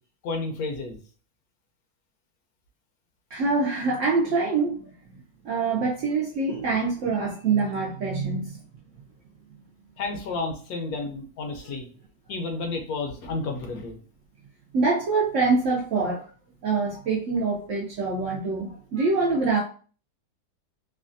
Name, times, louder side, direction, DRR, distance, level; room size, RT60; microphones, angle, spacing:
voice 1, 0.2-1.0 10.0-11.9 12.3-14.0, left 3 dB, 70° left, 3 dB, 1.0 m, -31 dB
voice 2, 3.3-4.9 5.4-8.6 14.7-16.2 16.6-19.6, right 4 dB, 70° right, -3 dB, 0.7 m, -25 dB
3.2 x 2.2 x 2.5 m, 0.40 s
omnidirectional pair, 1.8 m